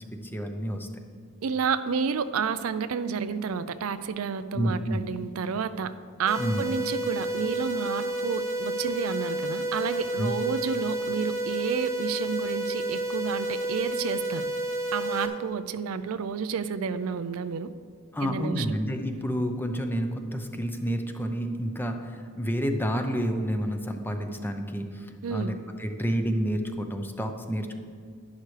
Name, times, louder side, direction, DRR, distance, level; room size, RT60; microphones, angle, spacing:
voice 1, 0.3-0.9 4.5-5.0 6.4-6.7 10.2-10.3 18.1-25.5 25.8-27.8, equal, 10° left, 5 dB, 0.7 m, -29 dB
voice 2, 1.4-5.9 6.2-14.5 14.9-17.7 18.2-18.8 25.2-25.5, right 6 dB, 75° right, 12 dB, 0.4 m, -30 dB
sound 1, 6.3-15.3, right 1 dB, 15° right, 1.0 m, -30 dB
11.0 x 10.5 x 3.3 m, 2.1 s
head